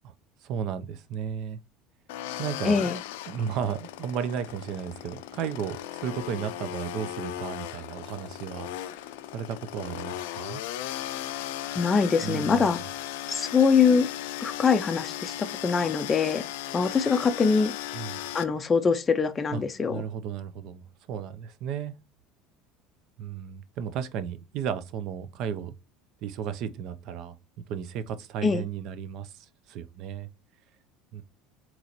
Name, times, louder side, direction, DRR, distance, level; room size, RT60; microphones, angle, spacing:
voice 1, 0.4-1.6 2.4-2.9 3.3-8.7 9.3-10.6 12.2-12.8 17.9-18.2 19.5-19.6 19.9-21.9 23.2-25.7 26.2-27.3 27.7-30.3 31.1-31.2, right 8 dB, 55° right, 0.5 m, -34 dB
sound 1, 2.1-18.4, left 13 dB, 85° left, 0.4 m, -37 dB
voice 2, 2.6-3.0 11.7-12.8 13.3-14.1 14.4-16.5 16.7-17.7 18.3-20.0 28.4-28.6, left 5 dB, 20° left, 0.4 m, -23 dB
3.9 x 3.0 x 2.9 m
supercardioid pair, 125°, 0 cm